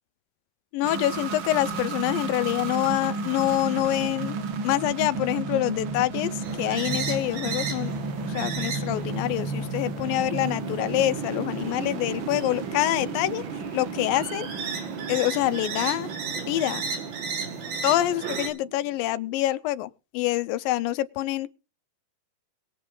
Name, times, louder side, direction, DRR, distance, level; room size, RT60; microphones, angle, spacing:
voice 1, 0.7-4.4 4.6-6.3 6.6-7.9 8.3-13.4 13.7-14.5 15.1-16.1 16.5-16.8 17.8-21.5, left 15 dB, 85° left, 2.5 m, -26 dB
sound 1, 0.8-19.3, right 4 dB, 60° right, 1.4 m, -33 dB
sound 2, 6.4-18.5, right 5 dB, 85° right, 4.5 m, -35 dB
22.5 x 7.9 x 3.8 m
omnidirectional pair, 4.0 m